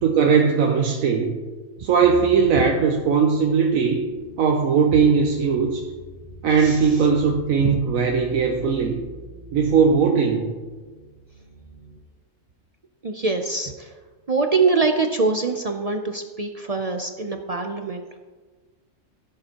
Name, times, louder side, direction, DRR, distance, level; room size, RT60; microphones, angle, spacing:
voice 1, 0.0-1.4 1.8-4.0 4.4-5.9 6.4-9.0 9.5-10.5, right 6 dB, 80° right, 2 dB, 1.2 m, -19 dB
sound 1, 2.0-12.0, right 2 dB, 20° right, 3.0 m, -43 dB
voice 2, 13.0-14.0 14.3-18.2, right 4 dB, 60° right, 5 dB, 0.4 m, -24 dB
15.5 x 7.4 x 2.9 m, 1.3 s
omnidirectional pair, 1.4 m